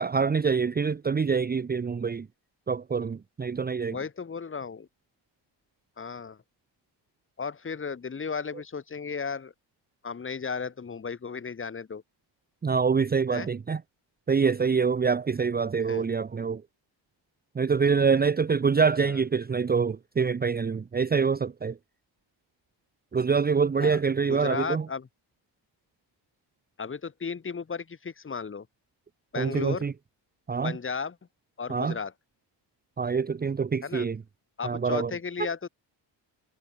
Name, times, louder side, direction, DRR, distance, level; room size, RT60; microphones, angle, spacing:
voice 1, 0.0-2.3 2.7-4.0 12.6-13.8 14.3-16.6 17.5-21.8 23.1-24.9 29.4-29.9 30.5-30.7 31.7-31.9 33.0-34.2 34.6-35.1, right 5 dB, 20° right, 1.0 m, -25 dB
voice 2, 3.9-4.9 6.0-6.4 7.4-9.5 10.0-12.0 13.3-13.5 15.8-16.0 18.8-19.2 23.8-24.0 24.3-25.1 26.8-28.7 29.3-29.9 30.6-31.2 31.6-32.1 33.8-34.1 34.6-35.7, left 5 dB, 25° left, 4.6 m, -34 dB
cardioid pair, 155°, 44 cm